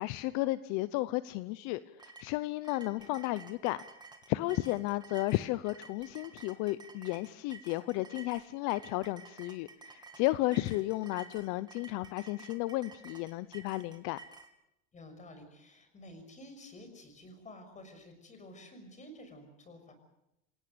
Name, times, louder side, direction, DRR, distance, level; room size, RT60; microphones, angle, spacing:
voice 1, 0.0-3.8 4.3-14.2, left 18 dB, 65° left, 15 dB, 0.8 m, -33 dB
sound 1, 2.0-14.5, right 4 dB, 15° right, 2.7 m, -52 dB
voice 2, 14.9-19.9, left 1 dB, 25° left, 8 dB, 6.2 m, -51 dB
27.5 x 17.5 x 6.9 m, 0.84 s
supercardioid pair, 130°, 31 cm